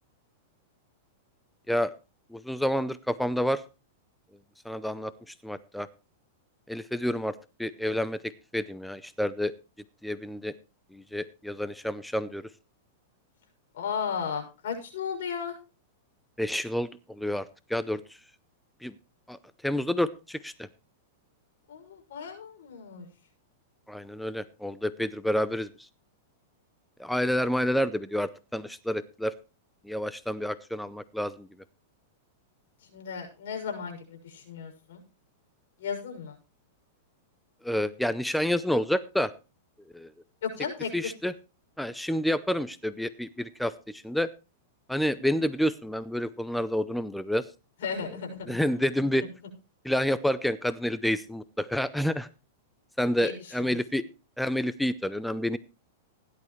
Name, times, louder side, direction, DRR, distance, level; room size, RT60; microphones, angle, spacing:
voice 1, 2.3-3.6 4.7-5.9 6.7-7.3 7.6-9.5 10.0-10.5 10.9-12.4 16.4-16.9 17.2-17.4 17.7-18.0 18.8-18.9 19.3-19.4 19.6-20.7 23.9-25.7 27.0-29.3 29.9-31.5 37.6-39.3 39.9-40.1 40.9-41.3 41.8-44.3 44.9-47.4 48.5-49.2 49.8-52.3 53.0-54.0 54.4-55.6, equal, ahead, 14 dB, 0.6 m, -29 dB
voice 2, 13.7-15.6 21.7-23.1 32.9-35.0 35.8-36.3 40.4-41.1 47.8-48.6 53.2-53.8, left 6 dB, 70° left, 2 dB, 6.5 m, -35 dB
17.0 x 11.0 x 3.2 m, 0.31 s
hypercardioid pair, 140°, 0 cm